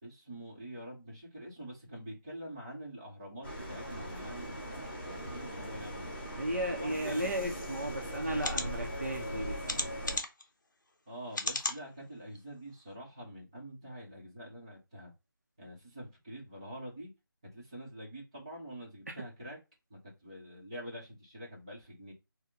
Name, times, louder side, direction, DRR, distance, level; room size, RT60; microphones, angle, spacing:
voice 1, 0.0-6.1 6.7-7.3 11.1-15.1 15.6-17.1 17.5-19.6 19.9-22.1, equal, 15° right, 0.9 m, -46 dB
Liège Guillemins Train Station, 3.4-10.2, equal, 35° left, 1.4 m, -40 dB
voice 2, 6.4-9.8, right 1 dB, 40° right, 0.7 m, -35 dB
sound 1, 7.6-7.7 8.4-8.7 9.7-10.4 11.3-11.8 12.4-12.5 12.8-12.9, left 2 dB, 60° left, 0.7 m, -34 dB
4.2 x 2.1 x 3.6 m
figure-of-eight pair, 180°, 12 cm